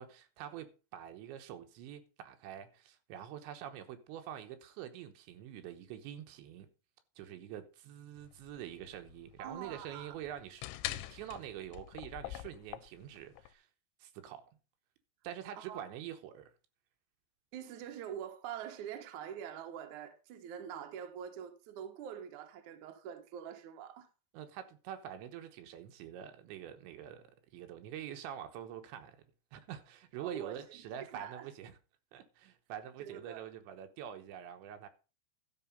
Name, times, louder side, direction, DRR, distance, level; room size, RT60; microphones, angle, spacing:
voice 1, 0.0-6.7 7.2-13.7 14.0-14.4 15.2-16.5 24.3-29.2 29.5-31.8 32.1-34.9, right 10 dB, 85° right, 3.4 m, -46 dB
sound 1, 8.2-13.5, left 15 dB, 90° left, 3.0 m, -44 dB
voice 2, 9.4-10.2 15.5-15.8 17.5-24.1 30.2-31.5 33.0-33.5, right 9 dB, 65° right, 2.0 m, -45 dB
13.0 x 5.6 x 5.3 m
omnidirectional pair, 5.2 m